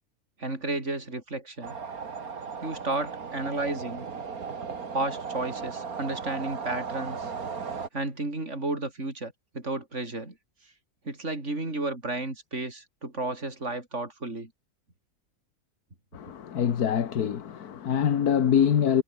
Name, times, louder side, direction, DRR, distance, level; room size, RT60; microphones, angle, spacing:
voice 1, 0.4-1.8 2.6-4.1 4.9-7.3 7.9-10.3 11.1-14.5, right 2 dB, 50° right, 5.7 m, -32 dB
sound 1, 1.6-7.9, right 5 dB, 70° right, 2.5 m, -36 dB
voice 2, 16.1-19.0, left 8 dB, 80° left, 1.8 m, -24 dB
omnidirectional pair, 1.6 m